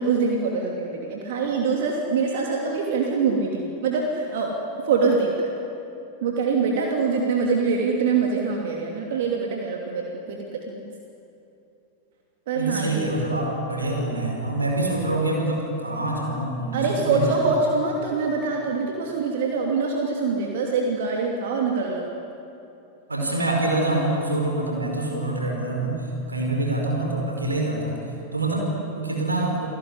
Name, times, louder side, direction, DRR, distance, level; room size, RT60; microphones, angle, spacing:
voice 1, 0.0-4.6 4.8-5.5 6.2-10.0 10.3-10.4 10.7-10.8 12.5-13.2 16.7-22.1, right 4 dB, 55° right, 0 dB, 2.9 m, -24 dB
voice 2, 12.5-17.3 23.1-28.0 28.3-29.7, right 2 dB, 80° right, 0 dB, 5.0 m, -25 dB
29.5 x 18.0 x 9.9 m, 2.8 s
figure-of-eight pair, 90°, 0 cm